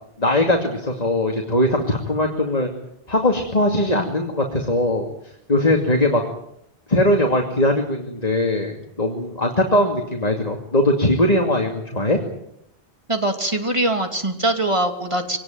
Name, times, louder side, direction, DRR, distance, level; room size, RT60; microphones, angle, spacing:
voice 1, 0.2-2.7 3.1-5.1 5.5-6.2 6.9-12.2, left 1 dB, 35° left, 2 dB, 2.7 m, -20 dB
voice 2, 13.1-15.4, right 1 dB, 25° right, 5 dB, 3.0 m, -22 dB
24.0 x 19.0 x 9.3 m, 0.76 s
omnidirectional pair, 1.2 m